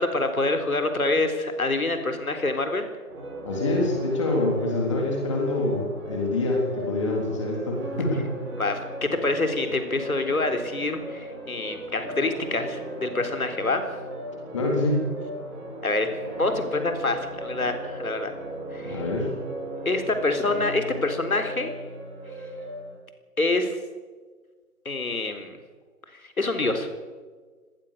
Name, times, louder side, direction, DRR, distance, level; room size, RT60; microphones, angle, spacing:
voice 1, 0.0-2.9 8.6-13.8 15.8-16.1 16.4-18.3 18.7-19.0 19.9-21.7 23.4-23.8 24.9-25.6 26.2-26.9, left 2 dB, 65° left, 7 dB, 3.9 m, -26 dB
sound 1, 3.1-22.9, right 1 dB, 15° right, 7.2 m, -37 dB
voice 2, 3.5-8.3 14.5-15.1 18.8-19.3, left 2 dB, 20° left, 0 dB, 3.5 m, -26 dB
25.0 x 19.5 x 6.7 m, 1.5 s
figure-of-eight pair, 160°, 46 cm